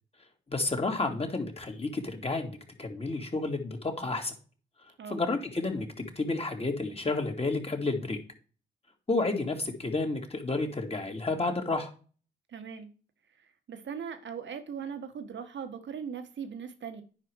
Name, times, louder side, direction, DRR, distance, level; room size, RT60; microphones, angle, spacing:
voice 1, 0.5-4.3 5.1-8.2 9.1-11.9, left 3 dB, 30° left, 2.8 m, -31 dB
voice 2, 12.5-12.9 13.7-17.0, right 7 dB, 65° right, 1.7 m, -39 dB
10.0 x 5.1 x 4.9 m
supercardioid pair, 50°, 20 cm